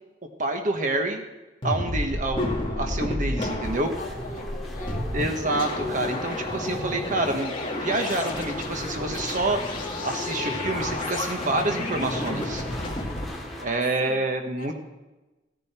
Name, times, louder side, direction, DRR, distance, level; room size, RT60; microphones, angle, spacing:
voice 1, 0.4-1.2 1.6-3.9 5.1-7.5 7.8-9.6 10.0-12.6 13.6-14.7, right 2 dB, 45° right, 4 dB, 1.4 m, -27 dB
sound 1, 1.6-13.2, left 1 dB, 30° left, 2.2 m, -31 dB
sound 2, 3.6-13.7, left 2 dB, ahead, 2.3 m, -37 dB
voice 2, 4.0-5.3 13.7-14.7, left 2 dB, 45° left, 1 dB, 1.9 m, -43 dB
16.5 x 10.5 x 4.5 m, 1.1 s
head